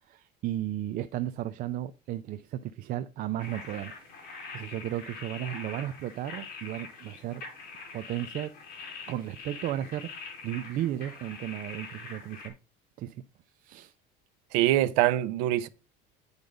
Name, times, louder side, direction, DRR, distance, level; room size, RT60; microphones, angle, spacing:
voice 1, 0.1-4.0 4.5-7.4 7.9-8.5 9.1-10.1 10.4-12.5 13.0-13.2 13.6-13.9, right 13 dB, 45° right, 0.5 m, -34 dB
sound 1, 3.4-12.5, left 4 dB, 45° left, 4.5 m, -44 dB
voice 2, 14.5-15.7, right 14 dB, 90° right, 0.8 m, -24 dB
9.6 x 5.3 x 4.9 m
cardioid pair, 155°, 20 cm